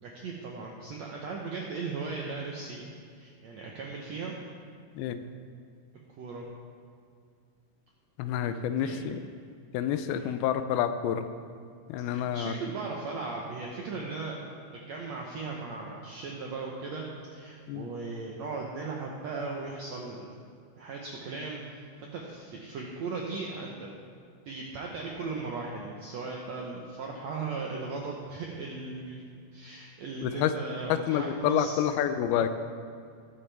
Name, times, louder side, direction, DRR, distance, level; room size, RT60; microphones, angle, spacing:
voice 1, 0.0-2.9 3.2-4.3 6.2-6.4 8.4-9.1 10.1-10.3 12.1-14.4 14.9-20.3 20.8-21.9 22.1-23.9 24.4-31.8, right 4 dB, 80° right, -1 dB, 1.5 m, -37 dB
voice 2, 8.2-9.2 9.7-11.3 11.9-12.5 17.7-17.9 30.2-30.5 30.9-32.5, left 10 dB, 85° left, 10 dB, 2.5 m, -28 dB
20.5 x 7.1 x 3.4 m, 2.2 s
omnidirectional pair, 4.3 m